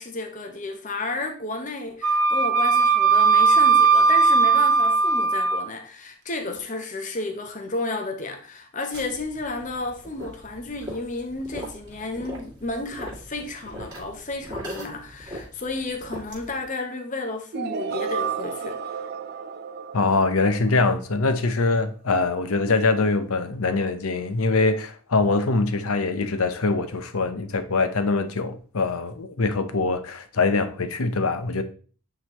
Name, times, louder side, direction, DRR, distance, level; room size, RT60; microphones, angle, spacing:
voice 1, 0.0-19.0, left 2 dB, 35° left, 0.8 m, -32 dB
Wind instrument woodwind instrument, 2.0-5.7, right 4 dB, 90° right, 0.9 m, -18 dB
sound 1, 8.9-16.6, equal, 20° right, 2.4 m, -40 dB
sound 2, 17.5-21.4, right 6 dB, 45° right, 0.4 m, -32 dB
voice 2, 19.9-31.6, left 3 dB, 75° left, 0.7 m, -23 dB
9.1 x 4.0 x 3.0 m
head